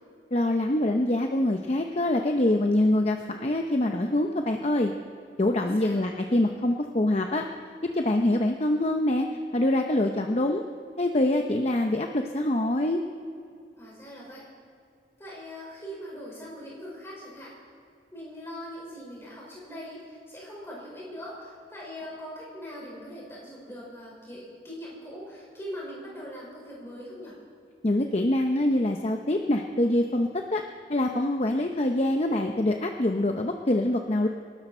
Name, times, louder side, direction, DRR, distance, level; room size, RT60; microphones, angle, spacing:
voice 1, 0.3-4.9 5.4-7.4 7.9-9.3 9.5-10.6 11.0-13.0 27.8-30.6 30.9-34.3, left 1 dB, 35° left, 4 dB, 0.7 m, -25 dB
voice 2, 13.8-14.5 15.2-17.5 18.1-27.4, equal, 15° left, -5 dB, 5.3 m, -41 dB
26.5 x 12.5 x 4.4 m, 2.4 s
head